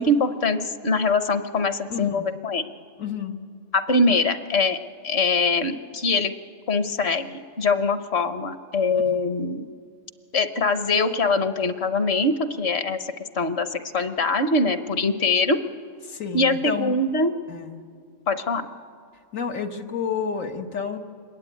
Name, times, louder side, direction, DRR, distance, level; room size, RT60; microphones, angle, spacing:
voice 1, 0.0-2.7 3.7-4.8 5.0-6.3 6.7-9.7 10.3-15.6 16.3-17.3 18.3-18.7, left 3 dB, 55° left, 10 dB, 1.2 m, -23 dB
voice 2, 1.9-2.3 3.0-3.4 9.1-9.2 16.0-17.0 17.5-17.8 19.3-21.0, left 6 dB, 90° left, 4 dB, 1.9 m, -30 dB
25.0 x 21.0 x 9.1 m, 2.1 s
omnidirectional pair, 1.3 m